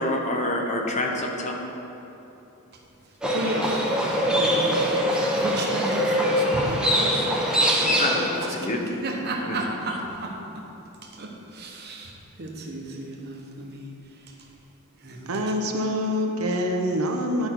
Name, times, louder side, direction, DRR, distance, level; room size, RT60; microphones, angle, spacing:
voice 1, 0.0-1.6 8.0-8.3 8.5-8.8, left 1 dB, 35° left, 1 dB, 0.9 m, -26 dB
voice 2, 2.7-3.8 4.3-4.9 5.3-10.7 11.0-14.5 15.0-15.4, right 1 dB, 50° right, 0 dB, 1.1 m, -34 dB
Livestock farm animals working animals, 3.2-8.5, equal, 5° right, 0.9 m, -23 dB
voice 3, 15.3-17.5, equal, 80° right, 3 dB, 0.8 m, -25 dB
11.0 x 5.3 x 4.6 m, 3.0 s
head